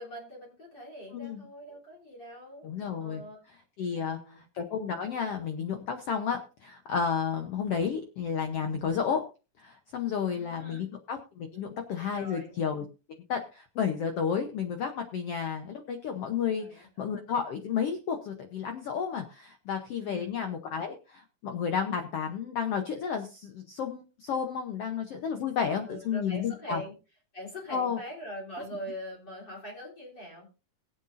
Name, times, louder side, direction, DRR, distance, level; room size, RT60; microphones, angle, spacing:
voice 1, 0.0-2.7 3.0-3.4 3.8-4.4 10.2-10.9 12.1-12.5 16.5-17.1 20.0-20.4 25.8-26.9 27.3-30.5, equal, 30° left, -2 dB, 4.0 m, -43 dB
voice 2, 1.1-1.5 2.6-3.2 3.8-9.2 9.6-12.8 13.3-26.8 27.7-28.0, left 7 dB, 70° left, 6 dB, 1.5 m, -32 dB
21.5 x 8.0 x 2.6 m, 0.32 s
omnidirectional pair, 3.9 m